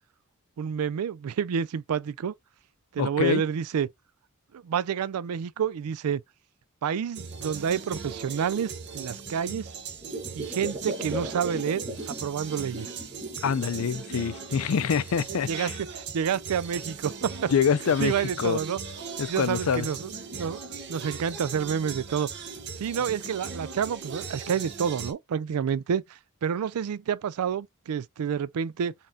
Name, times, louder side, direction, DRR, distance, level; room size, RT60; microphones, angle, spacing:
voice 1, 0.6-2.3 2.9-3.9 4.5-6.2 6.8-9.7 10.3-13.0 15.3-17.5 18.0-18.8 19.3-20.6 20.9-22.3 22.8-28.9, right 7 dB, 90° right, 0.4 m, -29 dB
voice 2, 3.0-3.4 13.4-15.7 17.5-18.1 18.4-18.6 19.2-19.9, left 6 dB, 70° left, 0.4 m, -25 dB
sound 1, 7.1-25.1, right 5 dB, 50° right, 0.9 m, -38 dB
sound 2, 10.0-12.2 12.5-13.9 14.3-15.2 15.8-15.9, equal, 25° right, 1.1 m, -38 dB
4.1 x 3.7 x 2.6 m
head